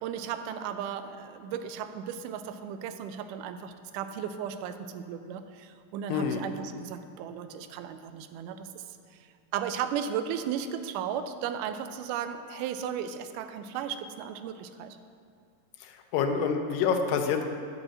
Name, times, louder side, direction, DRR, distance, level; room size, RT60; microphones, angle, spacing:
voice 1, 0.0-8.8 9.5-15.0, right 8 dB, 80° right, 9 dB, 2.0 m, -35 dB
voice 2, 6.1-6.4 16.1-17.4, left 6 dB, 90° left, 5 dB, 2.3 m, -26 dB
11.0 x 3.9 x 7.4 m, 2.4 s
omnidirectional pair, 3.9 m